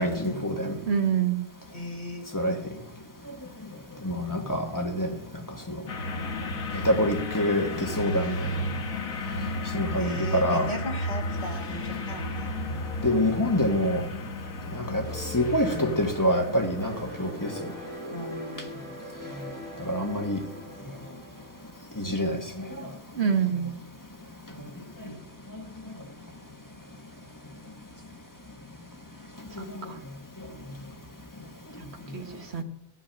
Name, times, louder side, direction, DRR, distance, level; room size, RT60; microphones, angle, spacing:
voice 1, 0.0-0.8 2.3-2.6 4.0-5.1 5.7-5.8 6.7-8.5 9.7-10.7 13.0-14.0 14.7-17.5 19.4-19.5 19.8-20.4 22.0-22.9 25.5-25.6 29.6-29.9, equal, 15° left, 3 dB, 1.2 m, -26 dB
voice 2, 0.8-1.4 23.1-23.7 29.8-30.0 32.1-32.6, right 7 dB, 55° right, 6 dB, 1.4 m, -26 dB
voice 3, 1.7-2.3 10.0-12.9 14.6-14.7 18.1-18.7 24.5-24.6 25.0-25.2, left 2 dB, 35° left, 1 dB, 1.9 m, -38 dB
sound 1, 5.9-17.3, left 1 dB, 85° left, 1.6 m, -33 dB
sound 2, 15.0-22.5, equal, 25° right, 5.7 m, -42 dB
14.0 x 5.8 x 8.7 m, 0.86 s
omnidirectional pair, 1.4 m